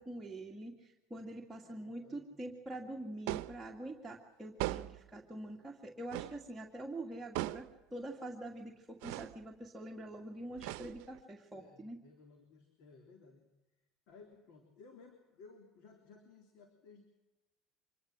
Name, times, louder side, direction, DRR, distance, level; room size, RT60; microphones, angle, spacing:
voice 1, 0.0-12.0, right 1 dB, 10° right, -3 dB, 2.1 m, -45 dB
voice 2, 1.6-2.3 11.5-13.5 14.1-17.0, left 4 dB, 75° left, 4 dB, 3.4 m, -59 dB
sound 1, 3.3-3.6 4.6-5.1 6.1-6.4 7.3-7.8 9.0-9.4 10.6-11.2, right 18 dB, 85° right, 0.7 m, -39 dB
25.0 x 21.0 x 6.2 m, 1.0 s
cardioid pair, 130°, 0 cm